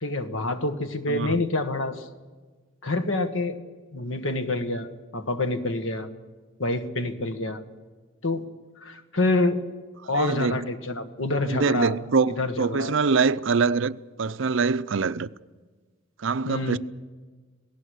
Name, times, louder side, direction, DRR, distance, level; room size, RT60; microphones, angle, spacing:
voice 1, 0.0-2.1 2.8-3.6 3.9-4.9 5.1-6.1 6.6-7.6 8.2-8.5 8.8-9.6 10.1-11.9 12.4-12.9 16.5-16.8, left 2 dB, 75° left, 1.7 m, -27 dB
voice 2, 1.1-1.4 10.1-10.7 11.5-15.3 16.2-16.8, right 4 dB, 70° right, 0.6 m, -24 dB
27.0 x 18.5 x 6.5 m
head